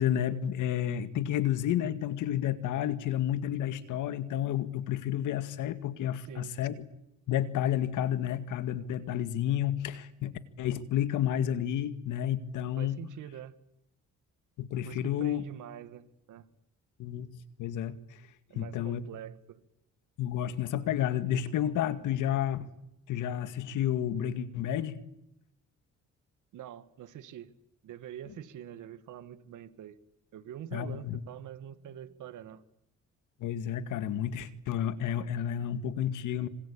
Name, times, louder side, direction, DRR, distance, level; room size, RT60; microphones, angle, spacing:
voice 1, 0.0-6.8 7.3-13.0 14.6-15.4 17.0-17.3 17.6-17.9 18.5-19.1 20.2-22.7 23.1-25.0 30.7-31.2 33.4-36.5, left 10 dB, 85° left, 12 dB, 2.1 m, -31 dB
voice 2, 6.2-6.5 12.8-13.5 14.8-16.5 18.5-19.6 26.5-27.5 27.8-30.0 30.3-32.6, right 10 dB, 80° right, 12 dB, 2.1 m, -45 dB
26.5 x 25.5 x 8.7 m, 0.84 s
cardioid pair, 90°, 30 cm